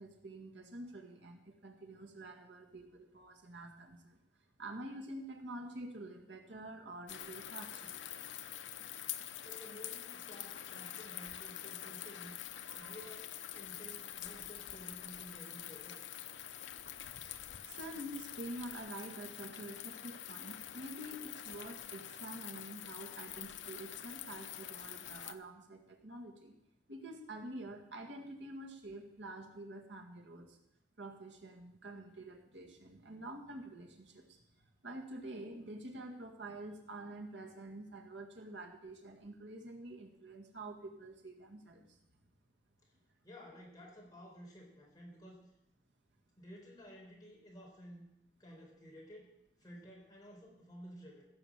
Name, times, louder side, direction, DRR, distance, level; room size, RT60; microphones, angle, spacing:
voice 1, 0.0-4.2 4.6-8.0 12.7-13.0 17.6-26.5 26.9-30.6 31.0-42.0, right 1 dB, 80° right, 3 dB, 1.9 m, -48 dB
sound 1, 7.1-25.3, left 11 dB, 85° left, 0.8 m, -46 dB
voice 2, 9.4-12.3 12.8-16.0 43.2-45.4 46.4-48.1 48.4-49.3 49.6-51.3, equal, 20° left, -3 dB, 4.3 m, -53 dB
16.0 x 7.1 x 7.5 m, 0.86 s
head